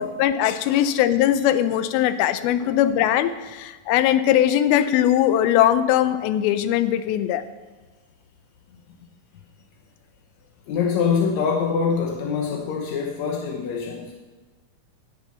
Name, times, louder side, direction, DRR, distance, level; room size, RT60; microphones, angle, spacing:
voice 1, 0.0-7.4, left 11 dB, 90° left, 12 dB, 2.5 m, -20 dB
voice 2, 10.7-14.1, left 6 dB, 70° left, 0 dB, 1.8 m, -24 dB
17.5 x 6.8 x 5.7 m, 1.3 s
omnidirectional pair, 4.2 m